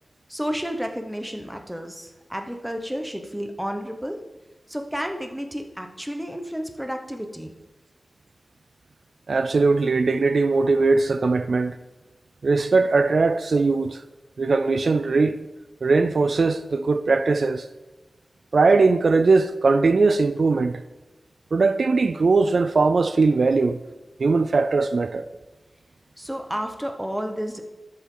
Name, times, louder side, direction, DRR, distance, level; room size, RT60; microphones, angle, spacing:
voice 1, 0.3-4.2 4.7-7.5 26.2-27.6, equal, 5° right, 1.0 m, -31 dB
voice 2, 9.3-11.8 12.4-14.0 14.4-15.4 15.8-17.7 18.5-20.8 21.5-23.8 24.2-25.2, right 3 dB, 70° right, 0.4 m, -20 dB
12.5 x 7.3 x 3.8 m
wide cardioid pair, 90°, 0 cm